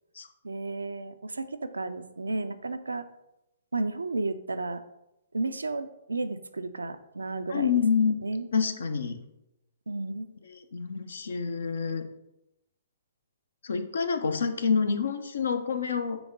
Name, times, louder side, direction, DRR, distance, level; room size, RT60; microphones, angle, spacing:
voice 1, 0.4-3.1 3.7-4.8 5.3-7.8 8.2-8.5 9.9-10.3, right 2 dB, 80° right, 10 dB, 0.4 m, -33 dB
voice 2, 7.5-8.2 8.5-9.2 10.5-12.1 13.6-16.2, left 6 dB, 65° left, 8 dB, 0.7 m, -27 dB
6.0 x 3.5 x 5.2 m, 0.89 s
figure-of-eight pair, 125°, 0 cm